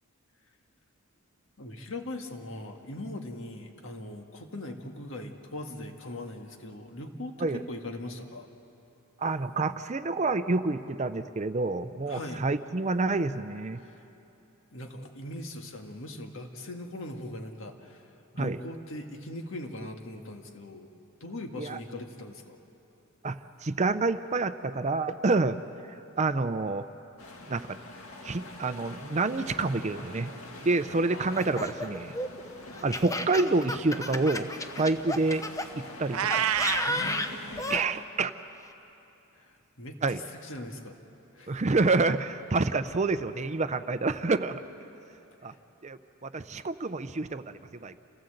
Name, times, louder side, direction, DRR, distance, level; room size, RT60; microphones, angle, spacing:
voice 1, 1.6-8.5 12.1-12.4 13.8-14.1 14.7-20.9 21.2-22.6 31.1-31.7 36.8-38.0 39.3-41.0 41.3-41.6 45.5-45.6, left 1 dB, 65° left, 4 dB, 1.8 m, -40 dB
voice 2, 9.2-13.8 18.4-18.6 21.6-21.8 23.2-25.6 26.2-26.8 27.5-27.8 28.2-30.3 30.6-32.1 32.8-34.5 34.8-35.4 35.8-36.5 37.7-38.3 40.0-40.2 41.5-44.6 45.4-45.5 45.8-47.5 47.8-47.9, right 3 dB, 35° right, 11 dB, 0.6 m, -28 dB
sound 1, 27.2-37.6, left 2 dB, 80° left, 2.2 m, -45 dB
Laughter, 31.3-35.7 36.3-37.9, left 1 dB, 15° left, 0.8 m, -32 dB
Meow, 36.1-36.9, right 9 dB, 85° right, 0.6 m, -27 dB
28.0 x 17.0 x 7.9 m, 2.9 s
head